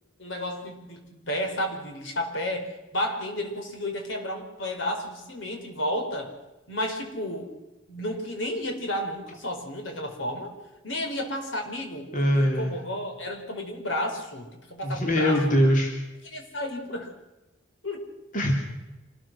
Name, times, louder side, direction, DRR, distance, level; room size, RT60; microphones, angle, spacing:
voice 1, 0.2-6.3 6.7-7.5 7.9-10.5 10.8-15.6 16.2-17.1 17.8-18.1, left 1 dB, 70° left, 4 dB, 5.0 m, -32 dB
voice 2, 12.1-12.7 14.8-15.9 18.3-18.5, equal, 45° left, 1 dB, 3.3 m, -22 dB
26.5 x 20.5 x 6.3 m, 1.0 s
head